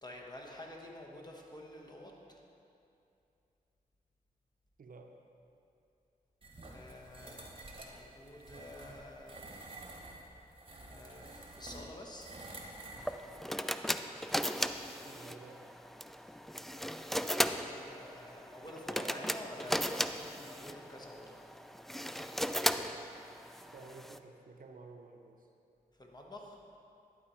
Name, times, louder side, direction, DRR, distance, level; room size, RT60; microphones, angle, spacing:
voice 1, 0.0-2.4 6.7-9.5 10.8-12.3 17.1-21.4 26.0-26.6, left 1 dB, 25° left, -1 dB, 1.3 m, -49 dB
voice 2, 4.8-5.1 15.0-15.7 23.7-25.5, right 3 dB, 60° right, 4 dB, 0.6 m, -52 dB
sound 1, 6.4-13.4, right 2 dB, 35° right, 1.1 m, -50 dB
sound 2, 13.0-24.2, equal, ahead, 0.3 m, -36 dB
11.0 x 4.3 x 4.4 m, 2.6 s
cardioid pair, 40°, 16 cm